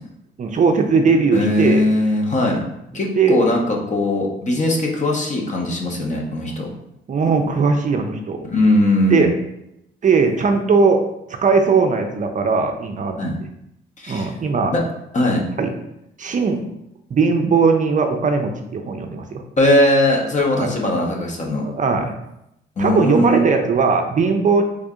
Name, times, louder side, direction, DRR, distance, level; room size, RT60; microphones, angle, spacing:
voice 1, 0.4-1.9 3.2-3.4 7.1-8.4 9.1-9.3 10.0-11.0 11.3-13.2 14.1-14.7 15.6-15.7 16.2-16.6 17.1-19.4 20.5-20.7 21.6-22.1 22.8-24.6, right 4 dB, 40° right, 5 dB, 0.5 m, -18 dB
voice 2, 1.3-2.7 2.9-6.7 8.4-9.3 13.2-13.4 14.0-14.3 14.7-14.8 15.1-15.5 19.6-21.7 22.8-23.4, left 1 dB, 40° left, 0 dB, 0.9 m, -19 dB
3.4 x 2.6 x 3.6 m, 0.82 s
cardioid pair, 90°, 20 cm